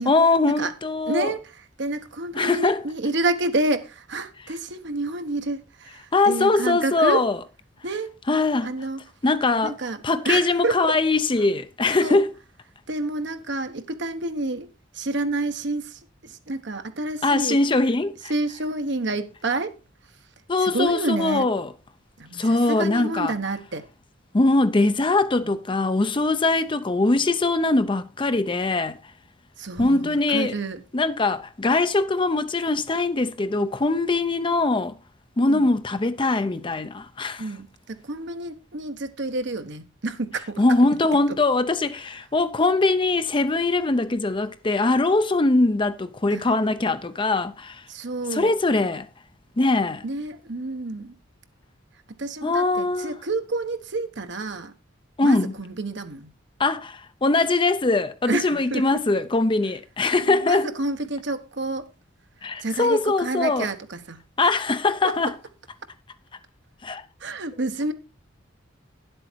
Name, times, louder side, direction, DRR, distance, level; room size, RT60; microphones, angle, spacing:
voice 1, 0.1-1.3 2.3-2.8 6.1-7.4 8.3-8.7 9.2-9.8 10.0-12.3 17.2-18.3 20.5-21.7 22.3-23.3 24.3-29.0 29.8-30.5 30.9-35.0 35.4-37.4 40.6-47.8 48.3-49.1 49.6-50.0 52.4-53.2 55.2-55.5 56.6-60.7 62.4-63.7 64.4-65.3 66.8-67.0, left 2 dB, 25° left, 0.6 m, -22 dB
voice 2, 1.1-7.3 7.8-8.1 8.6-9.0 9.6-11.0 12.0-12.2 12.9-14.7 14.9-17.6 18.3-19.8 20.6-21.5 22.2-23.9 25.4-25.5 29.6-30.8 35.4-35.7 37.4-40.6 46.3-46.4 47.9-48.5 50.0-51.2 52.1-54.7 55.2-56.3 58.3-59.0 60.3-61.9 62.6-64.2 65.0-65.2 67.2-67.9, right 2 dB, 60° right, 1.1 m, -29 dB
10.5 x 7.9 x 4.5 m
head